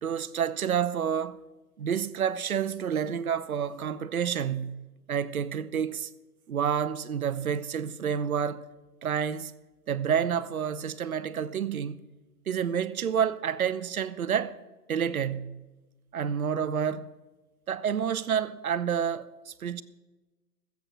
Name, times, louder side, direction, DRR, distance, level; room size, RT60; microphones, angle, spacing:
voice 1, 0.0-1.4 1.8-6.1 6.5-8.6 9.0-9.5 9.9-12.0 12.5-14.6 14.9-15.6 16.1-17.1 17.7-19.8, right 8 dB, 60° right, 0.7 m, -29 dB
14.0 x 8.2 x 6.2 m
hypercardioid pair, 145°, 50 cm